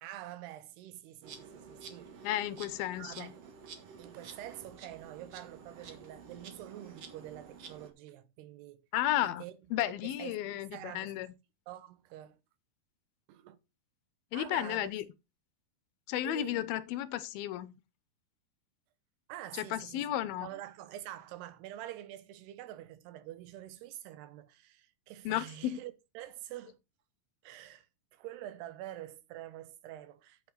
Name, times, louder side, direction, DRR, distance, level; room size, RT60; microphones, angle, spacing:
voice 1, 0.0-2.2 3.0-3.4 4.0-8.8 9.2-11.3 11.7-12.4 13.3-13.6 14.3-14.9 16.2-16.7 19.3-20.1 20.4-26.8 27.4-27.9 28.1-30.5, right 13 dB, 80° right, 3.0 m, -46 dB
Insect, 1.2-7.9, right 6 dB, 55° right, 2.0 m, -50 dB
voice 2, 2.2-3.3 8.9-9.4 9.7-11.3 14.3-15.1 16.1-17.7 19.5-20.5 25.3-25.8, left 13 dB, 75° left, 2.4 m, -33 dB
8.4 x 8.3 x 4.1 m
omnidirectional pair, 4.7 m